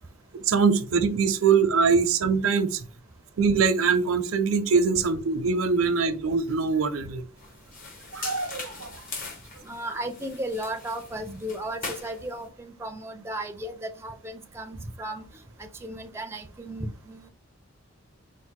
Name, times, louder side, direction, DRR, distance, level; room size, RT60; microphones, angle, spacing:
voice 1, 0.5-2.8 3.4-7.2 8.1-9.0, right 5 dB, 85° right, 10 dB, 0.6 m, -23 dB
sound 1, 7.4-12.5, left 3 dB, 40° left, 1.0 m, -40 dB
voice 2, 9.6-15.2 15.6-17.3, right 1 dB, 10° right, 6 dB, 0.4 m, -35 dB
4.5 x 2.1 x 4.5 m, 0.39 s
head